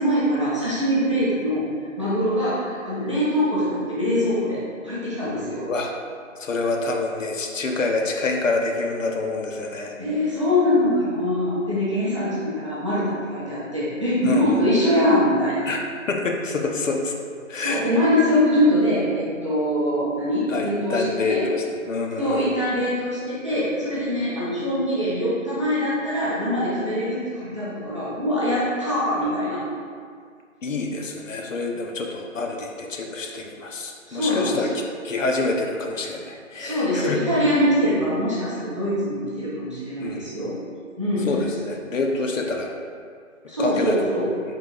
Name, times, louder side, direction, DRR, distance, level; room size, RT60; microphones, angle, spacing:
voice 1, 0.0-1.6 2.0-4.6 4.8-5.6 10.0-15.7 17.6-21.4 22.2-29.6 34.1-34.7 36.6-40.5 41.0-41.3 43.5-44.3, equal, 25° right, -10 dB, 0.6 m, -23 dB
voice 2, 5.3-5.9 6.4-10.0 14.2-14.6 15.7-17.1 17.5-17.8 20.5-22.6 30.6-34.7 35.0-37.4 37.9-38.1 40.0-40.3 41.3-42.7 43.6-44.0, left 3 dB, 70° left, 2 dB, 0.6 m, -27 dB
3.7 x 2.8 x 3.6 m, 2.1 s
figure-of-eight pair, 165°, 40 cm